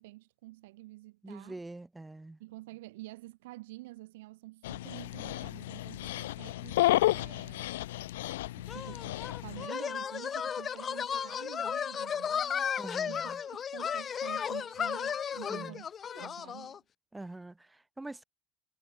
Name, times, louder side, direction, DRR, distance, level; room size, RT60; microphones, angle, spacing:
voice 1, 0.0-1.6 2.4-6.8 7.1-7.8 8.6-12.7 13.0-16.8, right 19 dB, 80° right, 7.9 m, -49 dB
voice 2, 1.2-2.4 12.8-13.4 15.5-15.8 17.1-18.2, right 2 dB, 10° right, 2.5 m, -44 dB
Dog, 4.6-9.7, left 16 dB, 85° left, 0.4 m, -32 dB
sound 1, 8.7-16.8, left 7 dB, 35° left, 4.1 m, -34 dB
supercardioid pair, 90°, 0 cm